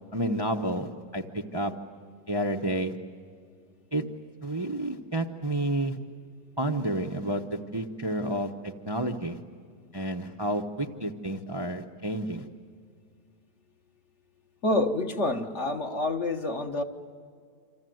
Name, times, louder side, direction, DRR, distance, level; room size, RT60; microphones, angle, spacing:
voice 1, 0.1-1.7 2.3-2.9 3.9-4.0 4.4-6.0 6.6-7.4 7.7-9.4 9.9-12.4, right 1 dB, 20° right, 3 dB, 0.8 m, -30 dB
voice 2, 14.6-16.8, left 2 dB, 45° left, 4 dB, 1.6 m, -27 dB
28.0 x 26.5 x 7.9 m, 2.1 s
omnidirectional pair, 1.8 m